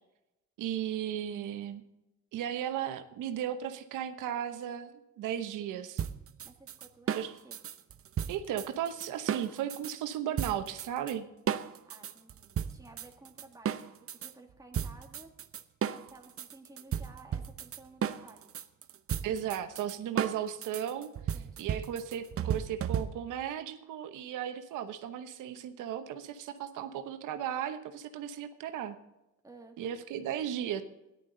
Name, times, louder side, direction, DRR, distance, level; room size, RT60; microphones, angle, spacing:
voice 1, 0.6-1.8 2.3-6.0 7.1-7.3 8.3-11.3 19.2-21.1 21.6-28.9 29.8-30.8, right 10 dB, 90° right, 8 dB, 1.0 m, -35 dB
sound 1, 6.0-9.9 10.4-11.1 11.5-14.3 14.7-23.4, right 9 dB, 50° right, 0.8 m, -35 dB
voice 2, 6.4-7.6 11.9-15.3 15.9-18.5 21.3-21.7 29.4-29.8, right 2 dB, 10° right, 1 dB, 2.3 m, -55 dB
14.0 x 11.0 x 3.9 m, 0.94 s
cardioid pair, 90°, 30 cm